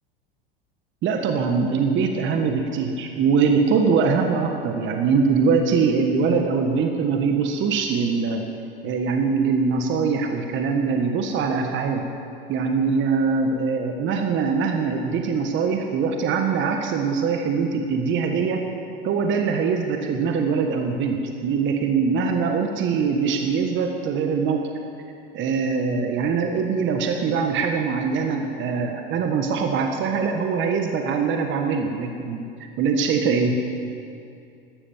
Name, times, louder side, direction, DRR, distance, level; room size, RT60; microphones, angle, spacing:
voice 1, 1.0-8.5 8.8-12.1 12.5-18.7 19.0-24.7 25.3-32.4 32.8-33.6, right 5 dB, 40° right, 4 dB, 1.5 m, -22 dB
13.0 x 12.5 x 7.2 m, 2.5 s
hypercardioid pair, 90°, 29 cm